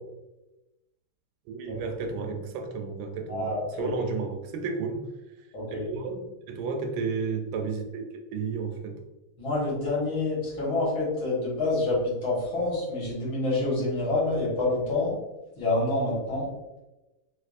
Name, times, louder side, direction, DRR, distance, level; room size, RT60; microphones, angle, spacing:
voice 1, 1.5-5.1 5.8-8.0 8.3-9.0, right 5 dB, 75° right, 4 dB, 1.2 m, -32 dB
voice 2, 3.3-3.9 5.5-5.9 9.4-15.2 15.6-16.5, left 2 dB, 65° left, -6 dB, 2.2 m, -27 dB
4.7 x 2.3 x 2.4 m, 1.0 s
omnidirectional pair, 2.3 m